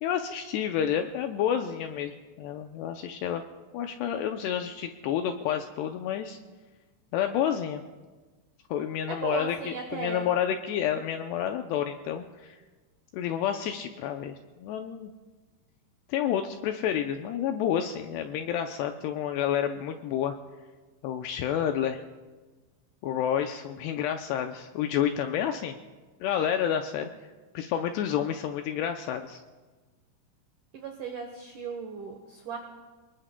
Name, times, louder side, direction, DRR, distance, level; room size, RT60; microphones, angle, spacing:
voice 1, 0.0-3.4 3.7-6.4 7.1-7.8 8.7-12.6 13.1-15.1 16.1-20.3 21.0-22.0 23.0-25.8 26.2-27.1 27.5-29.4, left 9 dB, 85° left, 6 dB, 2.4 m, -29 dB
voice 2, 9.1-10.3 30.7-32.6, right 5 dB, 85° right, 3 dB, 1.7 m, -36 dB
28.5 x 20.0 x 2.2 m, 1.3 s
omnidirectional pair, 5.3 m